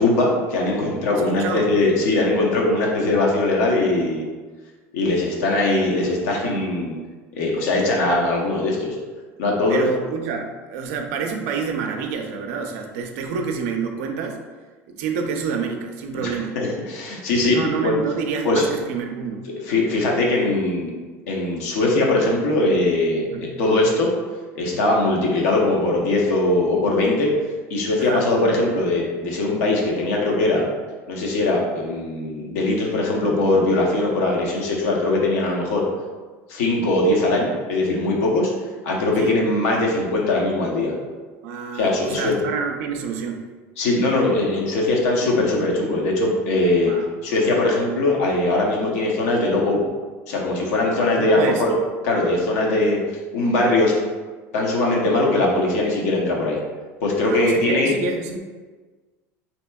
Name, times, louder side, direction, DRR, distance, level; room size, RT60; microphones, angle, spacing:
voice 1, 0.0-4.2 4.9-7.0 7.3-9.0 9.4-9.8 16.1-17.9 18.4-18.6 19.7-20.9 21.3-24.1 24.5-27.3 27.7-30.6 31.1-35.8 36.5-38.5 38.8-40.9 41.7-42.4 43.8-46.9 47.2-49.8 50.3-51.7 52.0-53.0 53.3-53.9 54.5-56.6 57.0-57.9, left 2 dB, 85° left, -2 dB, 0.7 m, -21 dB
voice 2, 1.1-1.7 9.7-14.4 14.9-16.6 17.5-19.5 23.2-23.5 28.0-28.3 39.2-39.4 41.4-43.4 46.8-47.1 51.1-51.7 57.2-58.4, right 5 dB, 80° right, 4 dB, 0.4 m, -28 dB
3.3 x 2.8 x 2.2 m, 1.4 s
supercardioid pair, 90°, 8 cm